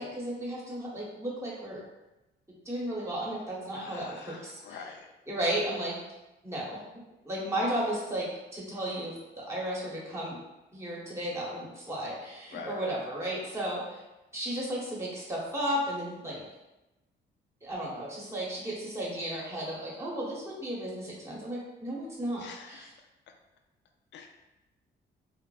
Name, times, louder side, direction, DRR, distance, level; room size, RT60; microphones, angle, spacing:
voice 1, 0.0-1.8 2.6-4.8 5.3-6.0 6.4-6.8 7.2-10.4 10.7-14.0 14.3-16.4 17.6-22.9, right 1 dB, 15° right, -5 dB, 1.0 m, -34 dB
voice 2, 3.7-5.1 12.5-12.8 22.4-22.9 24.1-24.3, left 5 dB, 65° left, 4 dB, 0.4 m, -45 dB
3.2 x 2.0 x 2.3 m, 1.0 s
cardioid pair, 90°, 20 cm